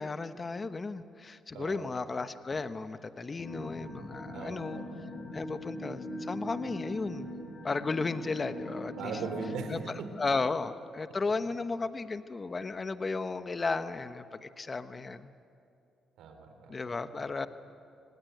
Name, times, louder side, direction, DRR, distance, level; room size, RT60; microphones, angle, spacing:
voice 1, 0.0-4.8 5.3-7.3 7.6-9.1 9.7-15.3 16.7-17.5, left 3 dB, 30° left, 11 dB, 1.0 m, -34 dB
voice 2, 1.5-1.9 4.3-4.8 9.0-10.1 16.2-16.8, right 5 dB, 80° right, 6 dB, 3.8 m, -39 dB
sound 1, 3.4-9.7, left 1 dB, 55° left, 8.0 m, -41 dB
26.0 x 19.5 x 9.3 m, 2.5 s
cardioid pair, 90°, 0 cm